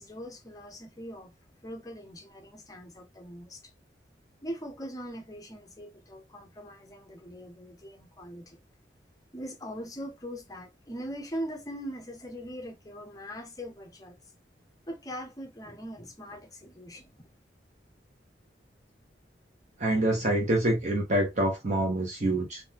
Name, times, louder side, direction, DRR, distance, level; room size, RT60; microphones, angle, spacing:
voice 1, 0.0-1.3 1.6-3.6 4.4-8.6 9.3-14.2 14.9-17.3, equal, 20° left, 0.8 m, -41 dB
voice 2, 19.8-22.6, right 1 dB, 45° right, 1.0 m, -26 dB
3.8 x 2.6 x 2.8 m
head